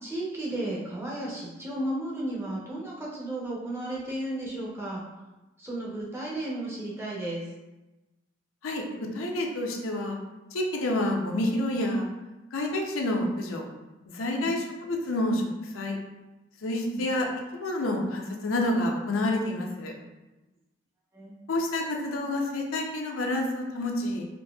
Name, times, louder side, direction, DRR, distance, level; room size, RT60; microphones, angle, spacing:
voice 1, 0.0-5.0 5.6-7.5 14.2-14.5 16.7-17.0 21.1-21.4, right 1 dB, 15° right, -5 dB, 0.6 m, -34 dB
voice 2, 9.1-10.2 10.5-12.1 12.5-13.6 14.1-16.0 16.6-17.3 17.6-19.9 21.5-24.3, left 1 dB, 90° left, 1 dB, 0.5 m, -28 dB
3.9 x 2.6 x 2.3 m, 1.1 s
head